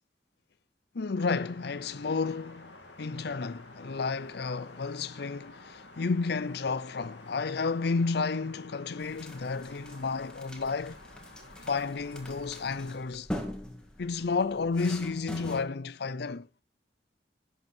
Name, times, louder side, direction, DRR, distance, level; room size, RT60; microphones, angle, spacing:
voice 1, 0.9-11.0 11.6-13.3 14.0-16.5, left 4 dB, 60° left, 0.6 m, -31 dB
sound 1, 1.1-13.0, left 2 dB, 75° left, 2.7 m, -51 dB
sound 2, 9.0-15.6, equal, 5° left, 1.8 m, -43 dB
11.0 x 8.1 x 4.4 m
head